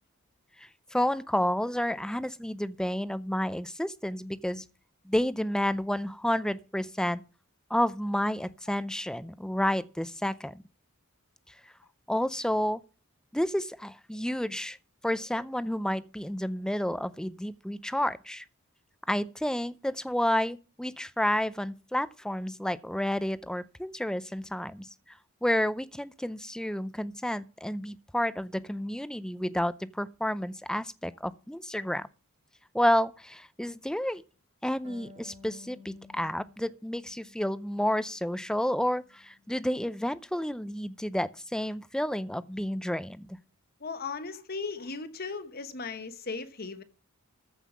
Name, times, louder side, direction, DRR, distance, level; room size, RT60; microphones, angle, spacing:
voice 1, 0.6-4.6 5.1-7.2 7.7-10.5 12.1-12.8 13.3-14.8 15.0-18.4 19.1-24.9 25.4-32.1 32.7-34.2 34.6-43.4, left 1 dB, 5° left, 0.5 m, -30 dB
Harp, 34.8-38.2 38.6-39.6, left 3 dB, 35° right, 2.7 m, -54 dB
voice 2, 43.8-46.8, left 4 dB, 45° left, 1.2 m, -37 dB
14.5 x 5.5 x 7.3 m
head